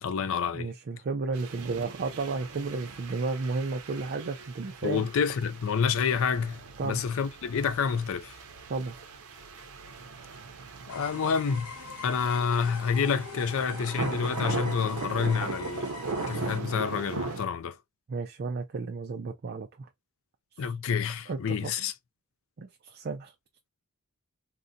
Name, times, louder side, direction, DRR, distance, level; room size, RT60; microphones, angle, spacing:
voice 1, 0.0-0.7 4.8-8.4 10.9-11.7 12.0-15.9 16.3-17.8 20.6-21.9, left 6 dB, 65° left, 0.4 m, -28 dB
voice 2, 0.5-5.1 6.8-7.0 8.7-9.0 18.1-19.9 21.3-21.7 22.6-23.3, right 3 dB, 45° right, 0.4 m, -33 dB
sound 1, 1.3-17.4, right 3 dB, 90° right, 0.6 m, -39 dB
sound 2, 10.9-16.6, left 3 dB, 85° left, 1.0 m, -43 dB
3.8 x 2.2 x 2.6 m
head